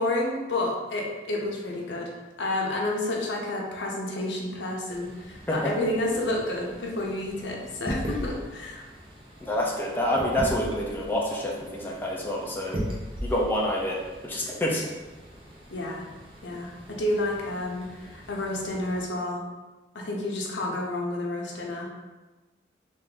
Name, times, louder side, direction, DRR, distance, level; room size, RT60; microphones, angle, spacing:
voice 1, 0.0-2.1 2.4-8.8 15.7-16.1 16.4-19.4 19.9-21.9, left 1 dB, 85° left, -1 dB, 0.7 m, -30 dB
sound 1, 4.9-19.1, equal, 30° right, 0.7 m, -39 dB
voice 2, 9.4-12.8 13.2-14.8, left 1 dB, 10° left, -4 dB, 0.5 m, -27 dB
3.4 x 2.5 x 3.7 m, 1.2 s
head